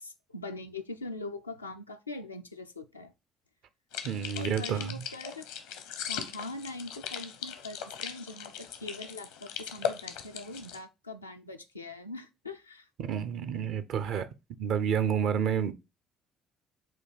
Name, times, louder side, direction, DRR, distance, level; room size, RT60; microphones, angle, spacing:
voice 1, 0.0-3.1 4.3-5.5 6.1-12.9, left 2 dB, 90° left, 0.4 m, -42 dB
sound 1, 3.9-10.8, left 8 dB, 70° left, 0.8 m, -39 dB
voice 2, 4.0-5.0 13.0-14.3 14.6-15.7, right 8 dB, 60° right, 0.6 m, -29 dB
7.6 x 2.8 x 4.7 m
figure-of-eight pair, 50°, 0 cm